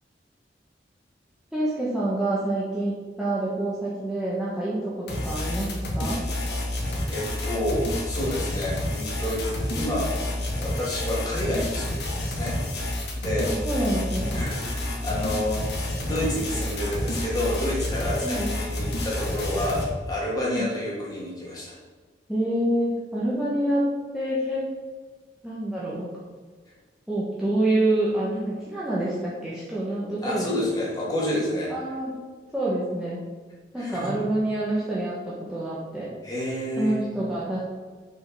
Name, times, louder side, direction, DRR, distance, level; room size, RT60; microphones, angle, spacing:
voice 1, 1.5-6.2 13.5-14.4 18.2-18.5 20.4-20.7 22.3-23.9 24.1-24.6 25.4-26.1 27.1-30.5 31.7-32.1 32.5-33.2 33.7-36.1 36.8-37.6, right 1 dB, 5° right, -8 dB, 1.4 m, -27 dB
sound 1, 5.1-19.8, left 1 dB, 70° left, 2.0 m, -29 dB
voice 2, 7.1-9.4 9.7-10.2 10.6-12.6 13.1-13.5 14.3-15.7 16.0-21.8 30.2-31.7 33.8-34.1 36.2-37.1, left 1 dB, 20° left, -6 dB, 2.7 m, -29 dB
6.5 x 5.5 x 6.2 m, 1.4 s
head